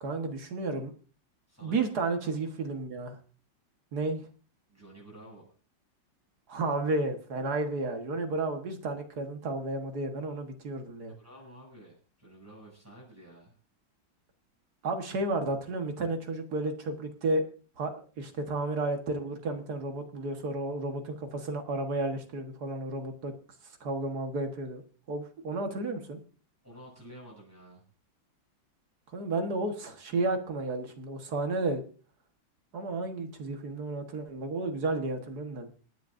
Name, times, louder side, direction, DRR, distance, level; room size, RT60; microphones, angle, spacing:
voice 1, 0.0-0.9 1.6-3.2 3.9-4.2 6.5-11.2 14.8-17.4 17.8-23.3 23.8-24.8 25.1-26.2 29.1-31.8 32.7-35.7, right 2 dB, 55° right, 5 dB, 1.9 m, -32 dB
voice 2, 1.5-1.8 4.7-5.5 11.1-13.5 26.6-27.8, right 1 dB, 5° right, -2 dB, 7.6 m, -51 dB
27.0 x 9.3 x 2.6 m, 0.38 s
omnidirectional pair, 2.0 m